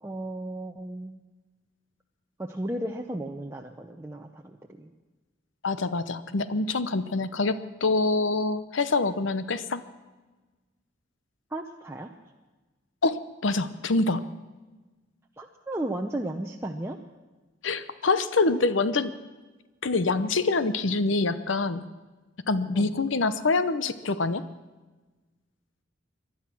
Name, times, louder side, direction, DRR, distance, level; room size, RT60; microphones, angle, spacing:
voice 1, 0.0-1.2 2.4-4.9 11.5-12.1 15.4-17.0 22.7-22.9, right 1 dB, 15° right, 1 dB, 0.7 m, -34 dB
voice 2, 5.6-9.8 13.0-14.2 17.6-19.1 19.8-21.8 22.5-24.4, left 3 dB, 75° left, 13 dB, 0.8 m, -25 dB
19.0 x 12.0 x 6.1 m, 1.2 s
head